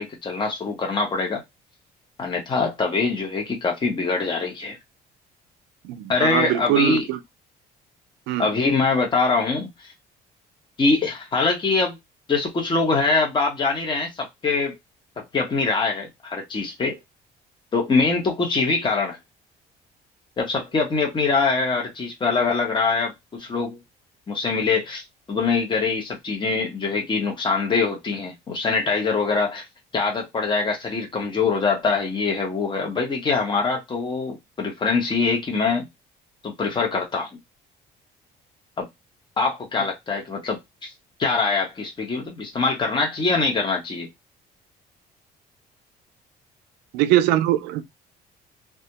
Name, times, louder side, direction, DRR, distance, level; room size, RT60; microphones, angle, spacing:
voice 1, 0.0-1.4 2.2-4.8 6.1-7.1 8.4-9.9 10.8-12.0 12.3-14.7 15.3-17.0 17.7-19.2 20.4-23.8 24.3-29.6 29.9-35.9 36.4-37.3 38.8-38.9 39.4-40.9 41.2-44.1, left 4 dB, 30° left, 0.9 m, -23 dB
voice 2, 5.8-7.2 8.3-8.5 46.9-47.8, right 13 dB, 90° right, 0.4 m, -22 dB
2.3 x 2.1 x 2.8 m
cardioid pair, 110°, 17 cm